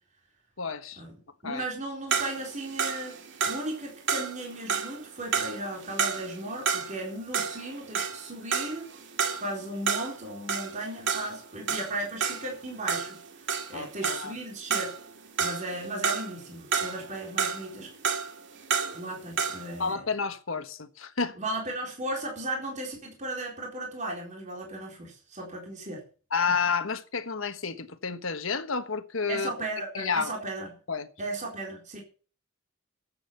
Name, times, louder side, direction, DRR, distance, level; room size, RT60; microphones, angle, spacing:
voice 1, 0.6-1.0 1.4-1.6 13.7-14.3 19.8-21.4 26.3-29.5 29.9-30.3 30.9-31.1, left 5 dB, 75° left, 1.4 m, -30 dB
voice 2, 1.4-3.2 3.4-8.9 9.4-13.2 13.7-14.9 15.4-17.9 18.9-20.0 21.4-26.0 29.3-30.7 31.2-32.0, right 1 dB, 40° right, 4.2 m, -36 dB
sound 1, 2.1-7.1 7.3-14.4 14.7-16.4 16.7-19.7, right 6 dB, 65° right, 2.0 m, -30 dB
13.5 x 8.7 x 6.9 m
head